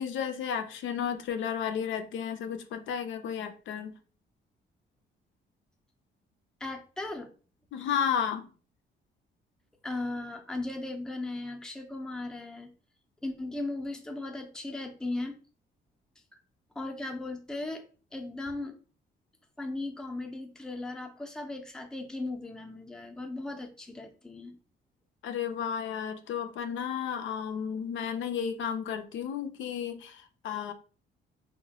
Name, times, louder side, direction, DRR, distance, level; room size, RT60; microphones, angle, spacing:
voice 1, 0.0-3.9 7.7-8.5 25.2-30.7, left 8 dB, 75° left, 0.5 m, -33 dB
voice 2, 6.6-7.3 9.8-12.7 13.2-15.4 16.8-17.8 18.1-18.8 19.6-24.6, left 2 dB, 5° left, 0.5 m, -37 dB
3.0 x 2.1 x 2.8 m
cardioid pair, 90°, 20 cm